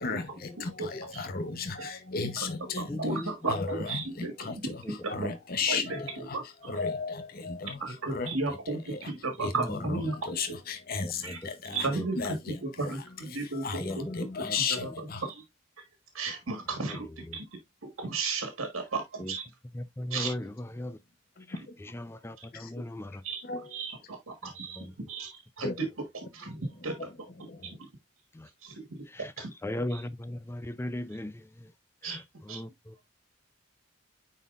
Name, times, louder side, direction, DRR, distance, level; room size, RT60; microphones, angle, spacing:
voice 1, 0.0-9.1 9.4-15.3 16.5-16.6 21.4-21.6 22.5-22.8 23.4-23.7 25.6-25.7 26.6-27.8, left 4 dB, 45° left, 0.8 m, -35 dB
voice 2, 0.8-1.2 1.8-1.9 2.4-2.5 2.8-5.3 5.7-6.7 7.8-10.2 11.2-11.4 11.7-12.4 12.6-14.0 14.8-15.4 16.1-17.1 17.3-19.4 20.1-20.3 21.6-21.7 22.4-22.5 23.2-23.4 23.7-25.9 26.1-27.1 27.8-27.9 28.6-29.0 29.4-29.5 29.9-30.0 32.0-32.2 32.5-32.6, right 3 dB, 85° right, 1.5 m, -35 dB
voice 3, 2.9-3.3 4.8-5.0 9.6-9.8 11.0-11.4 11.7-12.1 13.8-14.1 14.4-14.6 16.9-17.0 19.2-19.3 19.7-21.0 21.5-23.2 24.8-24.9 28.3-28.5 29.1-29.3 29.6-31.7 32.0-33.0, left 1 dB, 10° left, 0.4 m, -38 dB
9.2 x 4.2 x 2.4 m
head